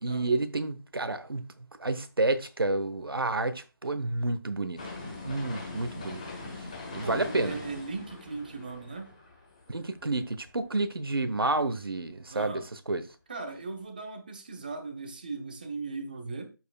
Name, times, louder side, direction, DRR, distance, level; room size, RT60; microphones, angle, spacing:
voice 1, 0.0-1.5 1.8-4.8 5.2-6.2 6.6-7.6 9.7-13.0, right 2 dB, 90° right, 1.1 m, -30 dB
sound 1, 4.8-10.8 11.2-11.3, left 3 dB, 20° left, 1.2 m, -42 dB
voice 2, 7.0-9.1 12.3-12.6 13.3-16.5, right 3 dB, 25° right, 0.9 m, -38 dB
12.5 x 4.7 x 2.3 m
figure-of-eight pair, 175°, 12 cm